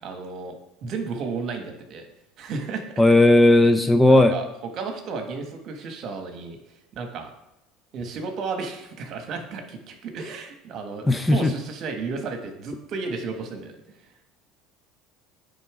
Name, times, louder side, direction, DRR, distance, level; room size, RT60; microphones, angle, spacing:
voice 1, 0.0-2.0 2.4-2.8 4.1-6.6 6.9-7.3 7.9-13.7, right 4 dB, 55° right, 5 dB, 1.4 m, -33 dB
voice 2, 3.0-4.3 11.1-11.5, left 1 dB, 10° left, 8 dB, 0.6 m, -16 dB
9.2 x 3.9 x 4.9 m, 0.87 s
supercardioid pair, 90°, 0 cm